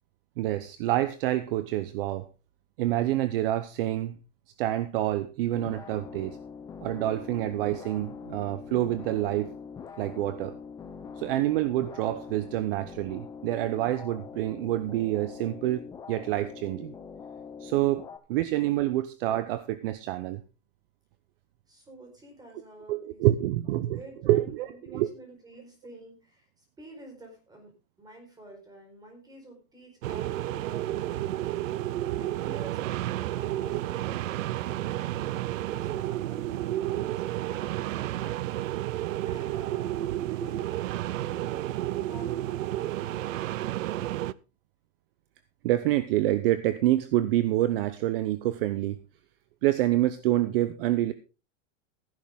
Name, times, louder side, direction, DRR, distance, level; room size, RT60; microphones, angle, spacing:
voice 1, 0.4-2.3 2.8-4.1 4.6-6.4 6.8-9.5 10.0-10.5 11.2-16.9 17.6-18.0 18.3-20.4 22.9-24.0 24.3-25.1 45.6-49.0 49.6-51.1, right 14 dB, 45° right, 13 dB, 0.8 m, -27 dB
sound 1, 5.5-18.2, left 6 dB, 10° left, 0.7 m, -43 dB
voice 2, 21.7-35.2 35.6-38.7 39.2-40.9 41.2-43.4, right 1 dB, 10° right, 3 dB, 4.4 m, -50 dB
sound 2, 30.0-44.3, right 14 dB, 90° right, 0.7 m, -31 dB
14.5 x 10.5 x 3.6 m, 0.30 s
supercardioid pair, 165°, 38 cm